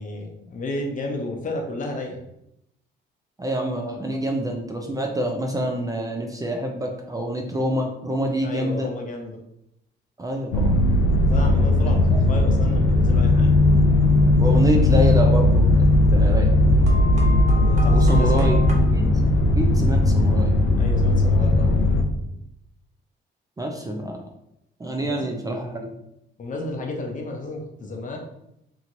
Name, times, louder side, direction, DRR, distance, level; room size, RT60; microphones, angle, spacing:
voice 1, 0.0-2.2 7.7-7.9 8.4-9.4 11.2-13.5 17.5-18.5 20.8-21.8 25.0-25.3 26.4-28.2, left 2 dB, 40° left, 2 dB, 0.7 m, -32 dB
voice 2, 3.4-8.9 10.2-10.8 12.1-12.2 14.4-16.6 17.9-18.6 18.9-19.1 19.4-20.6 23.6-24.2 24.8-25.9, right 1 dB, 20° right, 2 dB, 0.4 m, -27 dB
sound 1, 10.5-22.0, left 1 dB, 85° left, 0.4 m, -17 dB
sound 2, 16.9-18.7, left 1 dB, 35° right, 0.8 m, -35 dB
3.0 x 2.8 x 2.5 m, 0.81 s
cardioid pair, 90°, 20 cm